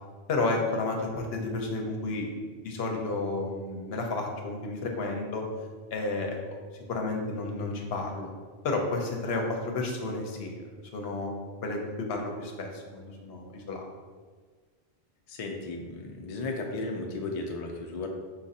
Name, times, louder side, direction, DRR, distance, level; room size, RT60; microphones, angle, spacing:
voice 1, 0.3-2.3 2.5-5.4 5.9-6.4 6.9-8.3 8.6-10.6 10.9-11.3 11.6-13.9, left 3 dB, 75° left, 1 dB, 0.9 m, -31 dB
voice 2, 15.3-18.1, left 3 dB, 50° left, 2 dB, 0.5 m, -35 dB
4.5 x 2.5 x 4.0 m, 1.5 s
omnidirectional pair, 1.1 m